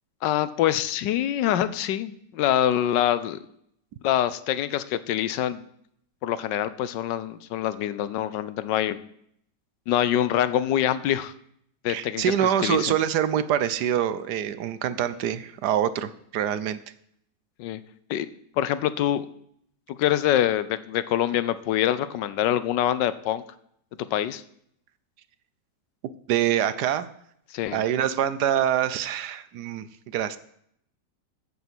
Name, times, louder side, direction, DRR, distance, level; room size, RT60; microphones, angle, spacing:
voice 1, 0.2-3.4 4.0-5.6 6.2-9.0 9.9-11.3 11.8-12.9 17.6-17.8 18.1-18.3 18.6-19.2 19.9-23.4 24.1-24.4 27.5-27.8, left 11 dB, 80° left, 14 dB, 1.3 m, -25 dB
voice 2, 11.9-16.8 26.3-27.1 27.7-29.9 30.1-30.4, right 10 dB, 70° right, 14 dB, 1.2 m, -25 dB
14.5 x 5.5 x 6.1 m, 0.70 s
omnidirectional pair, 1.9 m